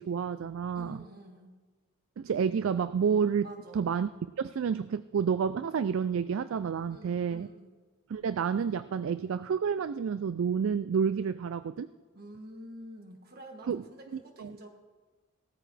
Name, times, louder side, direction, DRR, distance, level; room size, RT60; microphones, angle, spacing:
voice 1, 0.0-1.0 2.2-3.5 3.7-4.1 4.4-7.5 8.1-11.9 13.7-13.8 14.4-14.5, right 6 dB, 70° right, 13 dB, 0.3 m, -29 dB
voice 2, 0.7-1.6 3.4-3.8 6.9-7.7 12.1-14.7, equal, 45° right, 3 dB, 1.8 m, -48 dB
17.5 x 13.5 x 3.3 m, 1.3 s
head